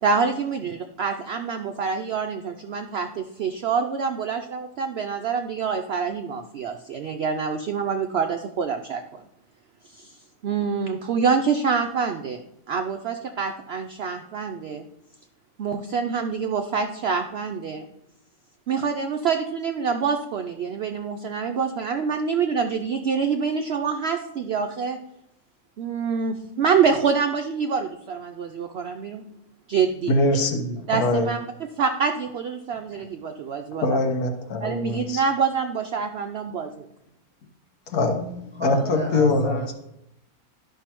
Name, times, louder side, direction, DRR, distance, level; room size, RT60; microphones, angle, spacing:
voice 1, 0.0-9.2 9.9-10.2 10.4-12.4 12.7-14.8 15.6-17.8 18.7-25.0 25.8-29.2 29.7-30.1 30.9-34.0 34.6-36.9, right 6 dB, 70° right, 6 dB, 0.6 m, -26 dB
voice 2, 30.1-31.3 33.8-35.2 37.9-39.7, left 2 dB, 80° left, 4 dB, 1.5 m, -23 dB
voice 3, 38.5-39.7, right 1 dB, 10° right, -1 dB, 0.8 m, -33 dB
12.0 x 5.5 x 2.9 m, 0.83 s
omnidirectional pair, 1.6 m